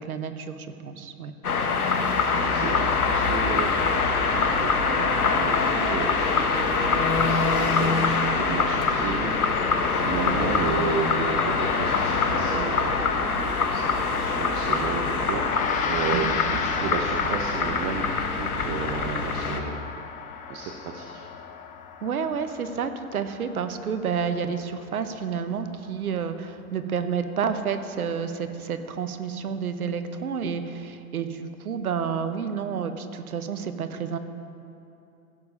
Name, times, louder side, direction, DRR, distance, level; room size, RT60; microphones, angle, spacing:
voice 1, 0.0-1.3 16.1-16.3 22.0-34.2, right 6 dB, 75° right, 9 dB, 1.0 m, -30 dB
sound 1, 1.4-19.6, left 4 dB, 80° left, 1.2 m, -24 dB
voice 2, 2.0-13.0 13.7-19.8 20.5-21.2, right 6 dB, 30° right, 1 dB, 0.9 m, -33 dB
sound 2, 2.4-19.1, right 3 dB, 5° right, 2.6 m, -39 dB
Gong, 15.3-24.9, left 6 dB, 20° left, 0.6 m, -33 dB
16.0 x 6.9 x 5.5 m, 2.8 s
figure-of-eight pair, 110°, 44 cm